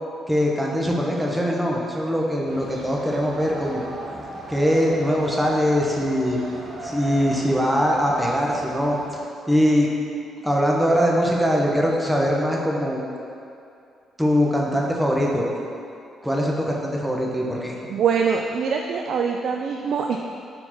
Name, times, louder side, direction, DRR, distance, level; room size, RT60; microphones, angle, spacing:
voice 1, 0.3-3.9 4.5-6.4 6.8-9.2 9.5-9.9 10.4-13.0 14.2-15.4 16.2-17.8, equal, 5° right, -2 dB, 1.0 m, -22 dB
sound 1, 2.4-9.2, right 1 dB, 50° right, 1.0 m, -37 dB
voice 2, 17.9-20.2, right 6 dB, 65° right, 3 dB, 0.3 m, -23 dB
4.5 x 4.4 x 5.8 m, 2.5 s
cardioid pair, 90°, 0 cm